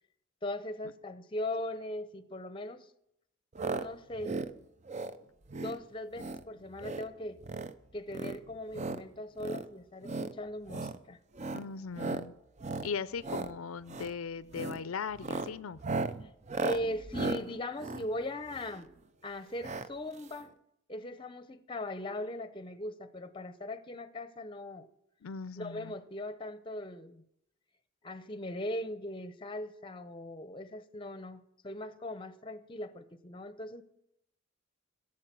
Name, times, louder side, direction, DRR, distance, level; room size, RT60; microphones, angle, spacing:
voice 1, 0.4-2.9 3.7-4.4 5.2-5.3 5.6-7.4 7.9-11.2 16.6-18.9 19.2-20.5 20.9-24.9 25.6-27.2 28.0-33.8, left 1 dB, 25° left, 12 dB, 0.7 m, -39 dB
sound 1, 3.6-3.9 4.1-4.5 4.9-5.2 5.5-5.8 6.1-6.4 6.7-7.1 7.4-7.7 8.1-9.0 9.4-9.6 10.0-10.3 10.7-11.0 11.4-11.6 12.0-12.3 12.6-12.9 13.2-13.5 13.9-14.1 14.5-14.8 15.1-18.8 19.6-19.9 20.2-20.3 20.4-20.5, right 3 dB, 35° right, 0.6 m, -36 dB
voice 2, 11.5-12.3 12.8-15.8 25.2-26.0, left 5 dB, 90° left, 16 dB, 0.5 m, -39 dB
16.5 x 7.5 x 7.5 m, 0.78 s
head